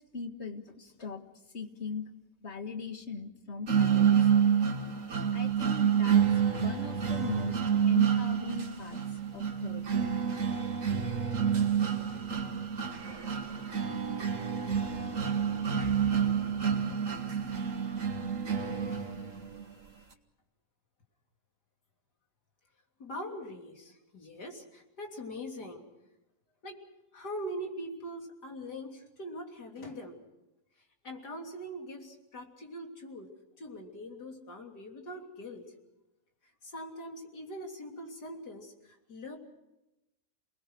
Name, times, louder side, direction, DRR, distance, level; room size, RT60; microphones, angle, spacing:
voice 1, 0.1-1.2 1.5-2.1 2.4-4.3 5.3-6.3 6.6-7.6 7.9-10.1, left 4 dB, 45° left, 6 dB, 2.1 m, -40 dB
sound 1, 3.7-19.6, right 7 dB, 55° right, 2.0 m, -28 dB
voice 2, 23.0-25.8 26.6-26.8 27.1-30.2 31.0-33.3 33.6-35.6 36.6-39.4, equal, 90° left, 2 dB, 3.8 m, -42 dB
29.0 x 20.0 x 6.4 m, 0.95 s
omnidirectional pair, 1.7 m